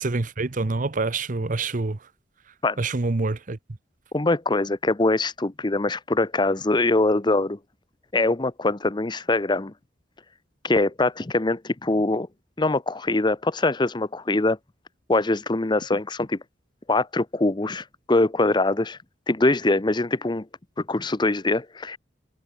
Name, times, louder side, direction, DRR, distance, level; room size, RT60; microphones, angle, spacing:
voice 1, 0.0-2.0 2.8-3.6, right 3 dB, 45° right, 0.8 m, -26 dB
voice 2, 4.1-7.6 8.1-9.7 10.6-12.3 12.6-14.6 15.1-16.4 16.9-19.0 19.3-20.5 20.8-22.0, left 2 dB, 25° left, 0.8 m, -23 dB
head